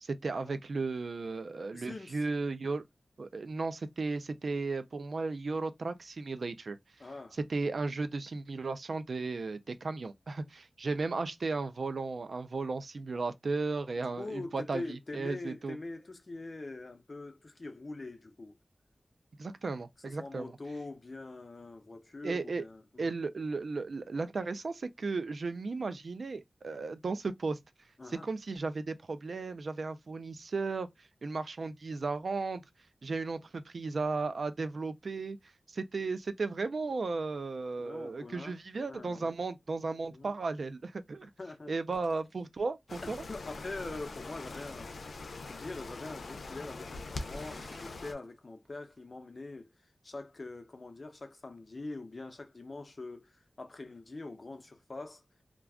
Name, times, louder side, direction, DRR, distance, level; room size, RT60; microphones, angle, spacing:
voice 1, 0.0-2.8 3.2-6.8 7.5-15.8 19.4-20.6 22.2-22.6 23.0-27.6 28.1-32.6 33.0-35.4 35.7-41.3 41.7-43.2, right 3 dB, 65° right, 0.3 m, -35 dB
voice 2, 1.7-2.2 7.0-7.4 14.0-18.6 20.0-23.2 28.0-28.3 37.8-38.5 38.8-39.3 40.1-40.3 41.4-41.7 43.0-44.9 45.4-49.7 50.0-55.2, left 2 dB, 40° left, 0.6 m, -43 dB
sound 1, 41.9-42.4 44.4-45.0 45.9-46.0 47.2-48.3 48.7-49.0, right 1 dB, 30° right, 0.8 m, -55 dB
sound 2, 42.9-48.1, left 3 dB, 85° left, 0.4 m, -43 dB
2.3 x 2.2 x 3.5 m
wide cardioid pair, 100°, 0 cm